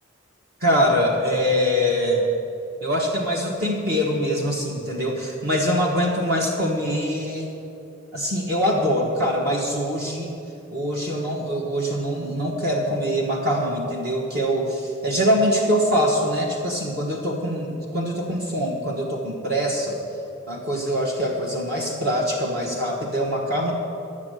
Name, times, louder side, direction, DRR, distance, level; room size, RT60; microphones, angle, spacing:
voice 1, 0.6-2.2 2.8-7.5 8.1-10.3 10.7-20.0 20.5-23.7, equal, 55° right, -1 dB, 1.3 m, -23 dB
12.0 x 7.5 x 8.0 m, 2.7 s
head